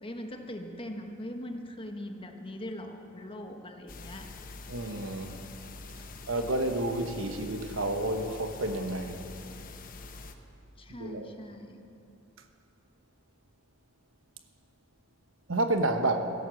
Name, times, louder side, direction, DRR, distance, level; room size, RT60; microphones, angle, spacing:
voice 1, 0.0-4.3 10.8-11.8, left 1 dB, 25° left, 4 dB, 1.2 m, -41 dB
sound 1, 3.9-10.3, left 3 dB, 45° left, 1.0 m, -45 dB
voice 2, 4.7-5.4 6.3-9.2 11.0-11.3 15.5-16.2, right 2 dB, 70° right, 6 dB, 1.2 m, -30 dB
16.5 x 11.0 x 7.7 m, 2.7 s
head